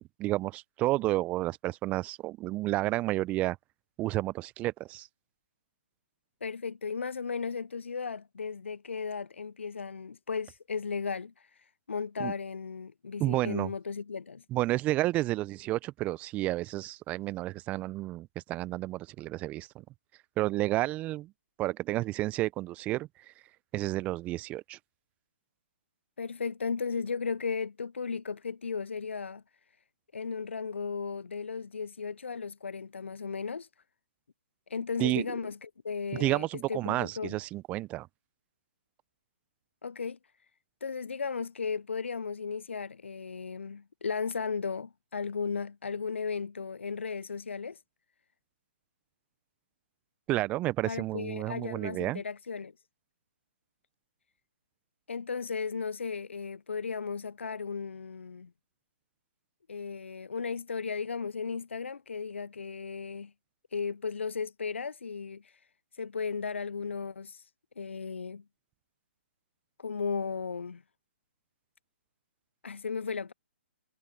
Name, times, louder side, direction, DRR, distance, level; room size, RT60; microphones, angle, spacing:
voice 1, 0.0-3.6 4.0-5.1 12.2-12.3 13.2-13.7 14.5-19.7 20.4-21.3 21.6-23.1 23.7-24.8 35.0-35.3 36.1-38.1 50.3-52.2, right 17 dB, 20° right, 0.7 m, -31 dB
voice 2, 6.4-14.4 26.2-29.4 30.1-33.7 34.7-37.4 39.8-40.2 40.8-47.8 50.9-52.7 55.1-58.5 59.7-63.3 63.7-65.6 65.9-67.5 67.8-68.4 69.8-70.8 72.6-73.3, left 5 dB, 80° left, 0.4 m, -35 dB
figure-of-eight pair, 130°, 6 cm